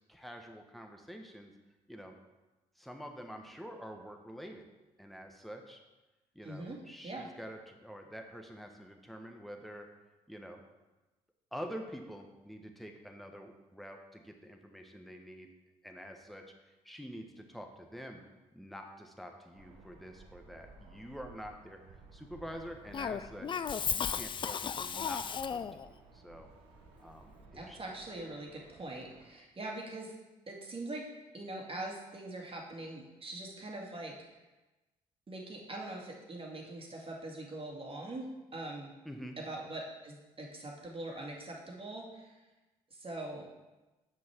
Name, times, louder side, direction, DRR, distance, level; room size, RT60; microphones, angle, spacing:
voice 1, 0.0-1.5 1.9-2.1 2.8-4.7 5.0-5.8 6.3-9.9 10.3-10.6 11.5-15.5 15.8-18.2 18.5-23.5 23.9-26.5 27.0-27.8 39.0-39.4, equal, ahead, 3 dB, 1.2 m, -47 dB
voice 2, 6.4-6.8 7.0-7.3 27.5-30.1 30.5-31.1 31.3-34.1 35.3-38.3 38.5-38.9 39.5-42.4 42.9-43.5, right 2 dB, 30° right, -1 dB, 2.2 m, -42 dB
sound 1, 19.5-29.3, right 3 dB, 75° right, 1.1 m, -57 dB
Cough, 22.9-25.9, left 7 dB, 30° left, 0.4 m, -35 dB
8.0 x 6.0 x 4.6 m, 1.1 s
figure-of-eight pair, 45°, 18 cm